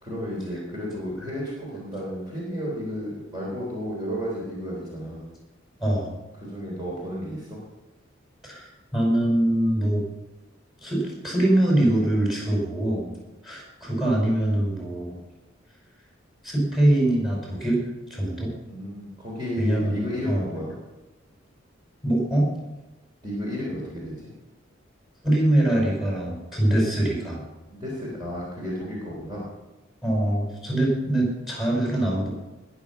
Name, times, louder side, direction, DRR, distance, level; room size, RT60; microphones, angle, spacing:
voice 1, 0.0-5.2 6.4-7.6 18.7-20.8 23.2-24.3 27.7-29.4, equal, 20° right, -5 dB, 3.6 m, -32 dB
voice 2, 5.8-6.1 8.4-10.0 10.8-13.1 13.4-15.2 16.4-17.8 18.1-18.5 19.6-20.5 22.0-22.5 25.2-27.4 30.0-32.3, right 1 dB, ahead, -3 dB, 5.2 m, -23 dB
20.5 x 7.2 x 5.6 m, 1.0 s
head